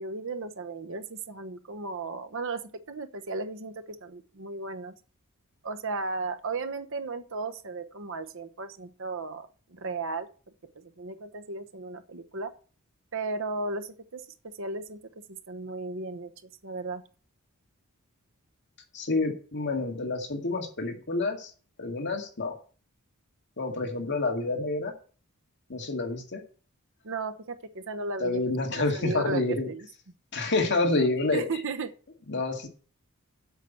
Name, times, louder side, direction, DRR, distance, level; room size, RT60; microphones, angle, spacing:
voice 1, 0.0-4.9 5.6-10.3 10.8-12.5 13.1-15.0 15.3-17.0 27.0-29.9 30.7-31.9, right 3 dB, 60° right, 9 dB, 1.0 m, -35 dB
voice 2, 18.9-21.5 21.8-22.5 23.6-24.9 25.7-26.4 28.2-29.7 30.3-31.4 32.3-32.7, left 2 dB, 55° left, 3 dB, 2.1 m, -28 dB
8.1 x 5.9 x 8.1 m, 0.40 s
head